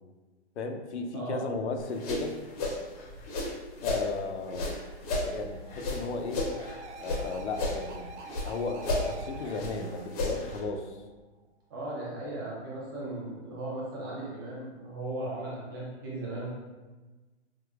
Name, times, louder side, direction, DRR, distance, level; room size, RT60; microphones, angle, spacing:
voice 1, 0.6-2.4 3.8-4.7 5.2-6.4 7.0-11.0, left 3 dB, 75° left, 4 dB, 0.6 m, -35 dB
sound 1, 0.8-1.3 4.8-11.3 14.8-15.6, right 3 dB, 85° right, 0.5 m, -48 dB
voice 2, 1.1-1.5 11.7-16.5, right 2 dB, 20° right, -5 dB, 0.4 m, -37 dB
sound 2, 1.8-4.1 4.5-7.2 7.5-8.5 8.8-10.6, left 2 dB, 35° left, 0.6 m, -33 dB
4.9 x 2.1 x 2.3 m, 1.2 s
hypercardioid pair, 150°, 34 cm